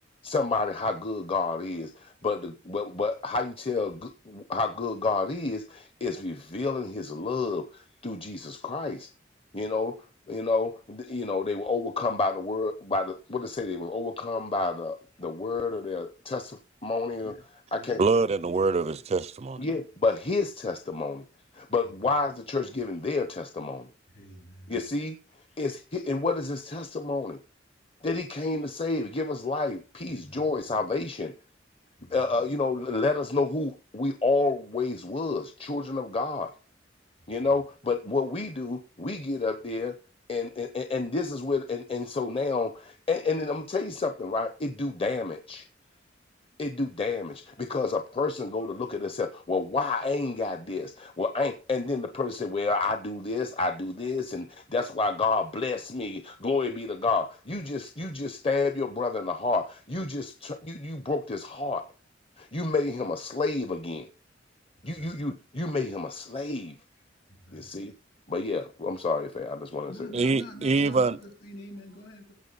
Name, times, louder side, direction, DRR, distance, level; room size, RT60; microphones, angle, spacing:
voice 1, 0.2-9.1 9.5-10.0 10.3-17.4 17.7-18.0 19.6-21.2 21.5-23.9 24.7-25.2 25.6-27.4 28.0-31.3 32.1-36.5 37.3-39.9 40.3-45.7 46.6-61.9 62.4-64.1 64.8-66.8 67.5-67.9 68.3-70.1, left 3 dB, 30° left, 0.8 m, -29 dB
voice 2, 18.0-19.6 70.1-71.2, right 3 dB, 35° right, 0.4 m, -24 dB
voice 3, 24.1-24.7 30.2-30.4 32.0-32.2 64.9-65.1 67.5-67.6 69.9-71.1 71.4-72.3, left 1 dB, 55° left, 3.5 m, -45 dB
16.5 x 5.9 x 4.0 m
head